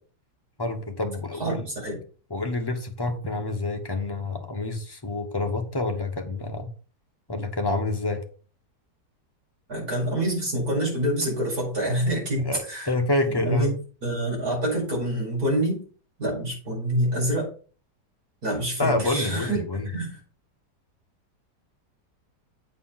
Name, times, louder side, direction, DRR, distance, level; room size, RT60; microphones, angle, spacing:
voice 1, 0.6-1.7 2.3-6.7 7.3-8.2 12.4-13.7 18.8-19.9, left 2 dB, 15° left, 0.9 m, -28 dB
voice 2, 9.7-12.9 13.3-13.7 14.0-15.8 16.2-17.5 18.4-20.2, right 1 dB, 65° right, 5.8 m, -26 dB
8.4 x 4.6 x 5.8 m
omnidirectional pair, 1.8 m